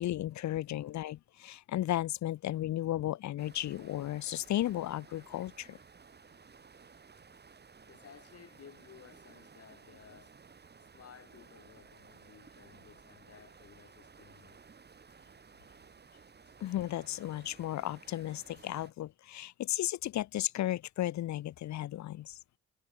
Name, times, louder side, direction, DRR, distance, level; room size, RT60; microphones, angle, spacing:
voice 1, 0.0-5.8 16.6-22.4, left 13 dB, 70° left, 0.9 m, -34 dB
sound 1, 3.4-18.9, right 5 dB, 35° right, 3.3 m, -57 dB
voice 2, 7.8-10.3 10.8-14.6, left 8 dB, 50° left, 4.6 m, -57 dB
cardioid pair, 90°, 30 cm